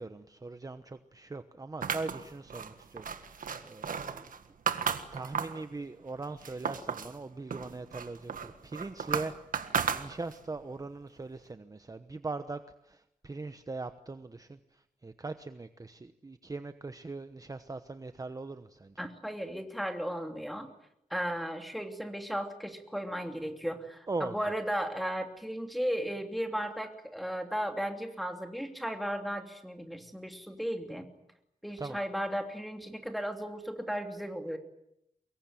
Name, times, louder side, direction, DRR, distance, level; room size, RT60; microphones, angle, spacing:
voice 1, 0.0-3.4 3.6-4.3 5.1-9.3 9.9-12.6 12.9-14.6 15.0-19.0 24.1-24.3 31.8-32.0, right 3 dB, 25° right, 10 dB, 1.0 m, -40 dB
sound 1, 1.8-5.7 6.1-7.2 7.5-10.5, right 7 dB, 90° right, 1.7 m, -34 dB
voice 2, 19.0-20.7 21.1-31.1 31.6-34.6, equal, ahead, 5 dB, 3.0 m, -35 dB
24.0 x 22.5 x 9.1 m, 0.78 s
wide cardioid pair, 145°, 14 cm